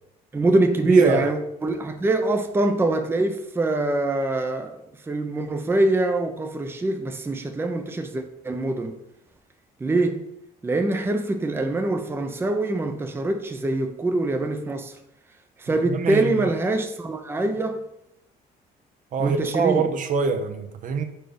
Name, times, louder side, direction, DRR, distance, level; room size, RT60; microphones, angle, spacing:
voice 1, 0.3-4.8 5.1-8.9 9.8-10.3 10.6-15.0 15.6-17.8 19.2-19.9, right 2 dB, 15° right, 0.6 m, -24 dB
voice 2, 0.8-1.3 15.9-16.5 19.1-21.0, right 5 dB, 50° right, 0.7 m, -24 dB
4.5 x 4.4 x 5.0 m
cardioid pair, 110°, 17 cm